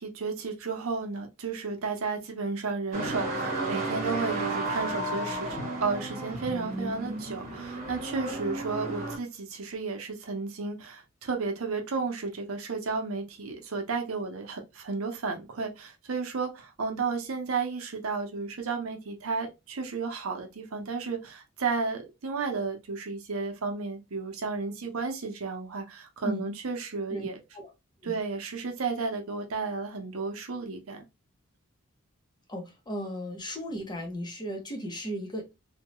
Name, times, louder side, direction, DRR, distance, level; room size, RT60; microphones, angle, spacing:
voice 1, 0.0-27.4 28.0-31.0, right 4 dB, 70° right, 0.7 m, -33 dB
sound 1, 2.9-9.2, right 2 dB, 35° right, 1.1 m, -33 dB
voice 2, 26.2-26.5 27.1-27.3 27.5-27.7 28.0-28.2 32.5-35.5, equal, 20° left, 0.7 m, -35 dB
2.8 x 2.2 x 3.0 m
head